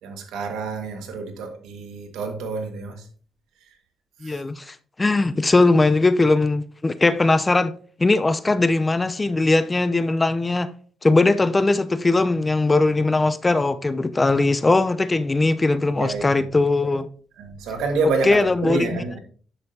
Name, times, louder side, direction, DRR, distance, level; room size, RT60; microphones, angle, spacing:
voice 1, 0.0-3.0 4.2-4.4 16.0-16.3 17.4-19.2, right 4 dB, 85° right, 1.6 m, -28 dB
voice 2, 4.2-7.7 8.0-10.7 11.0-17.1 18.2-18.9, left 2 dB, 20° left, 0.6 m, -20 dB
9.9 x 6.8 x 2.8 m
cardioid pair, 90°, 0 cm